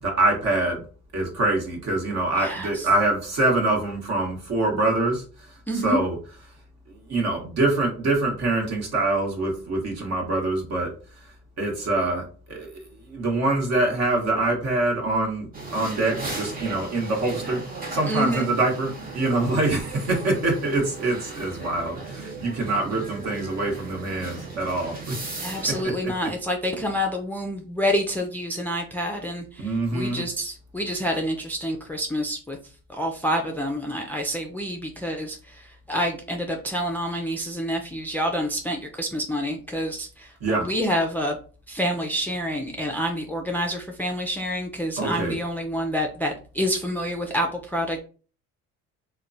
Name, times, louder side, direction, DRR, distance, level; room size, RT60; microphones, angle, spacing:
voice 1, 0.0-0.8 1.1-6.2 6.9-10.9 11.6-25.2 25.7-26.1 29.6-30.3 40.4-40.7 45.0-45.4, right 2 dB, 55° right, 1 dB, 1.1 m, -25 dB
voice 2, 2.4-2.7 5.7-6.0 18.1-18.5 25.4-32.6 32.9-40.3 40.6-41.4 41.7-48.0, equal, 5° left, 2 dB, 0.4 m, -28 dB
sound 1, 15.5-25.8, right 3 dB, 25° right, 0.8 m, -36 dB
2.9 x 2.2 x 2.5 m, 0.38 s
supercardioid pair, 85°, 32 cm